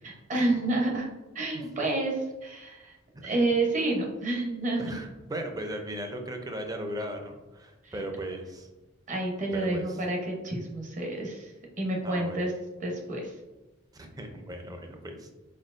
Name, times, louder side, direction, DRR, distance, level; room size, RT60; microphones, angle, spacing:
voice 1, 0.0-1.1 1.3-3.0 3.2-5.0 7.8-7.9 9.1-11.5 11.8-12.5 12.8-13.3, right 2 dB, 40° right, 0 dB, 0.9 m, -29 dB
voice 2, 4.8-8.7 9.5-10.0 12.0-12.4 13.9-15.3, right 1 dB, 20° right, 4 dB, 0.5 m, -37 dB
4.4 x 4.2 x 2.5 m, 1.1 s
head